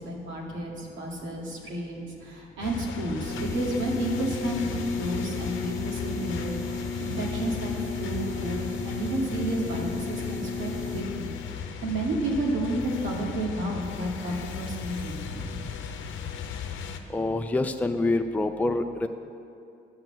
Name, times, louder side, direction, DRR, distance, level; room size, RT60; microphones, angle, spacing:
voice 1, 0.0-11.3 11.8-15.8, right 1 dB, 75° right, -2 dB, 2.2 m, -31 dB
sound 1, 2.6-17.0, left 6 dB, 75° left, 0.8 m, -37 dB
sound 2, 3.2-11.0, left 4 dB, 40° right, 2.3 m, -34 dB
voice 2, 17.1-19.1, left 2 dB, 10° left, 6 dB, 0.5 m, -26 dB
10.5 x 5.8 x 7.9 m, 2.5 s
cardioid pair, 90°, 20 cm